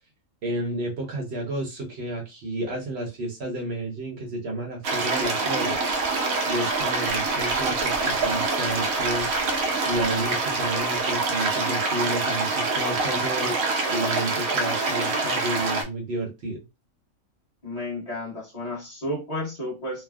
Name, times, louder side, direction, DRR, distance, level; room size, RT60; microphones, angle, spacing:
voice 1, 0.4-5.8 6.5-9.3 9.8-13.6 13.9-16.6, right 1 dB, 55° right, 0 dB, 0.9 m, -31 dB
sound 1, 4.8-15.8, right 3 dB, 75° right, 1.0 m, -25 dB
voice 2, 17.6-20.0, left 1 dB, 30° left, -5 dB, 1.1 m, -32 dB
3.2 x 2.0 x 2.3 m, 0.25 s
omnidirectional pair, 1.5 m